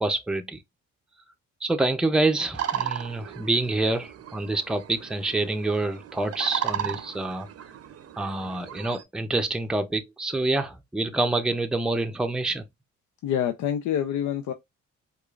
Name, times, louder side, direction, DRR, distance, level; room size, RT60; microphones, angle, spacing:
voice 1, 0.0-0.6 1.6-7.5 8.2-12.6, right 2 dB, 5° right, 0.6 m, -27 dB
sound 1, 2.5-9.0, right 9 dB, 55° right, 0.6 m, -35 dB
voice 2, 13.2-14.5, left 9 dB, 75° left, 0.6 m, -26 dB
4.7 x 2.4 x 2.4 m
cardioid pair, 90°, 30 cm